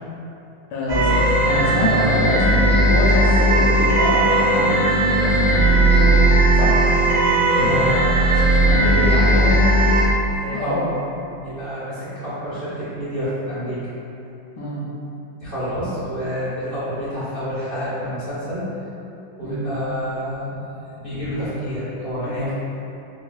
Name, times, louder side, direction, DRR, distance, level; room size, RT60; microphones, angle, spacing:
voice 1, 0.7-6.2 6.5-6.7 10.5-10.8 14.6-14.8 19.4-19.7, left 1 dB, 75° left, -6 dB, 1.1 m, -25 dB
sound 1, 0.9-10.0, right 1 dB, 85° right, 1.7 m, -17 dB
voice 2, 7.5-10.0 10.4-10.8 11.1-13.8 15.4-18.6 19.4-20.6 21.0-22.5, equal, 55° right, -14 dB, 0.6 m, -28 dB
4.9 x 2.0 x 2.3 m, 2.8 s
omnidirectional pair, 2.2 m